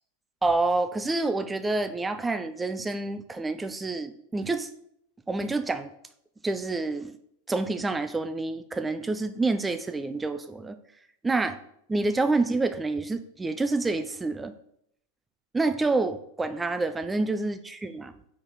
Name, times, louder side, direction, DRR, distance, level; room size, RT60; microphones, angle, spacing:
voice 1, 0.4-4.7 5.3-5.9 6.4-7.1 7.5-10.8 11.2-11.6 11.9-14.5 15.5-18.1, right 3 dB, 10° right, 10 dB, 0.5 m, -28 dB
4.8 x 4.4 x 4.8 m, 0.70 s
figure-of-eight pair, 90°, 0 cm